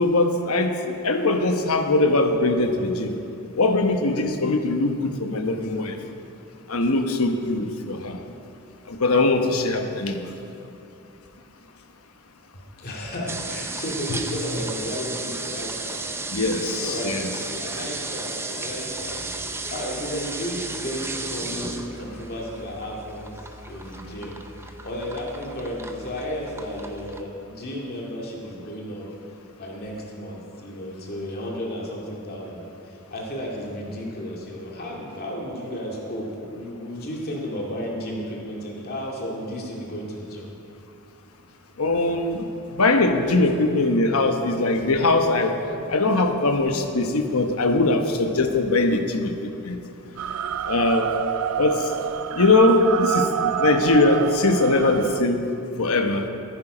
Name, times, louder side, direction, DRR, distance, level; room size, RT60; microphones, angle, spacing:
voice 1, 0.0-3.2 3.6-6.0 6.7-8.2 8.9-10.3 16.3-17.3 41.8-42.5 42.7-45.5 45.9-49.8 50.7-51.1 51.6-51.9 52.3-55.5 55.8-56.3, left 2 dB, 75° left, 5 dB, 1.1 m, -21 dB
voice 2, 12.8-16.0 16.8-29.1 29.5-40.5, equal, 45° left, -2 dB, 2.2 m, -33 dB
sound 1, 13.3-27.2, right 3 dB, 10° right, 0.6 m, -34 dB
sound 2, 50.2-55.2, right 9 dB, 85° right, 0.4 m, -27 dB
14.0 x 10.5 x 5.0 m, 2.8 s
head